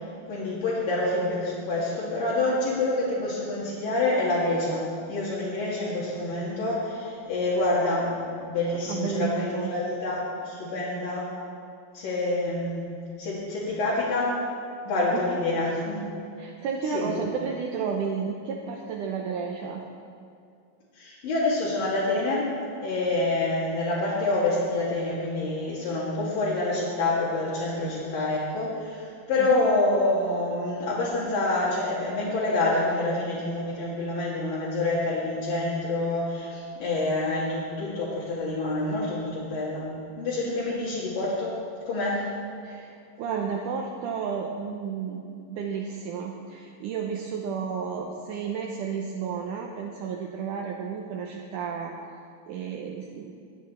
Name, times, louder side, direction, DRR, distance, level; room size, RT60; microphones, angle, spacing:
voice 1, 0.3-8.1 8.4-11.3 11.9-12.9 13.2-14.4 14.8-16.1 16.9-17.1 21.0-22.5 22.8-42.3, left 2 dB, 75° left, -9 dB, 3.8 m, -27 dB
voice 2, 8.9-9.7 15.1-15.4 16.4-19.8 29.4-29.6 40.5-40.6 42.6-45.2 45.5-51.9 52.5-53.3, right 6 dB, 75° right, 0 dB, 2.2 m, -32 dB
21.5 x 8.9 x 4.4 m, 2.4 s
omnidirectional pair, 4.1 m